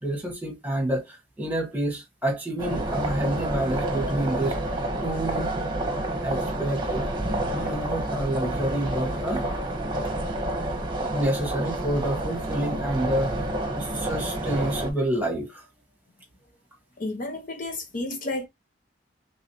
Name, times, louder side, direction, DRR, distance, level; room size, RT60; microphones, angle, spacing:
voice 1, 0.0-4.6 5.0-5.5 6.2-7.1 7.5-9.4 11.1-13.4 13.7-15.7, right 1 dB, 10° right, 1.7 m, -28 dB
sound 1, 2.6-14.9, right 1 dB, 25° right, 1.0 m, -29 dB
voice 2, 17.0-18.5, left 2 dB, 45° left, 0.7 m, -31 dB
3.9 x 3.4 x 2.9 m
head